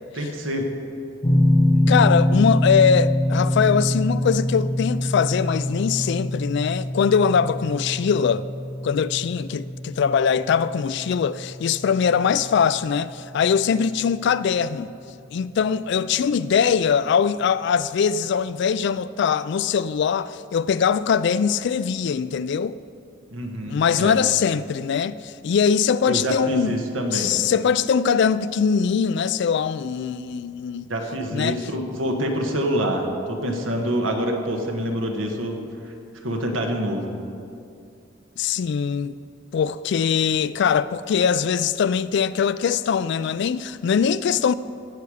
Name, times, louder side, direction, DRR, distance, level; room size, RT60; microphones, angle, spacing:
voice 1, 0.1-0.7 23.3-24.2 26.1-27.4 30.9-35.6 35.8-35.9 36.2-37.1, equal, 80° right, 1.4 m, -26 dB
sound 1, 1.2-14.1, left 1 dB, 25° left, 0.9 m, -25 dB
voice 2, 1.9-8.5 8.8-14.9 15.3-22.8 23.7-26.8 27.1-30.9 31.3-31.6 38.4-39.2 39.5-44.5, left 6 dB, 60° left, 0.3 m, -22 dB
16.5 x 6.8 x 4.9 m
head